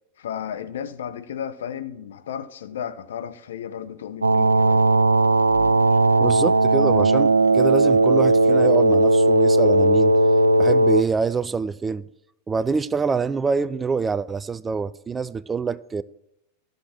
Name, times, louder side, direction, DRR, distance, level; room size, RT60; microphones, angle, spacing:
voice 1, 0.2-4.9, left 8 dB, 60° left, 0.7 m, -34 dB
sound 1, 4.2-11.0, right 2 dB, 80° right, 0.4 m, -17 dB
voice 2, 6.2-10.2 10.6-12.0 12.5-16.0, right 5 dB, 15° right, 0.3 m, -25 dB
13.0 x 6.5 x 5.9 m
figure-of-eight pair, 90°, 0 cm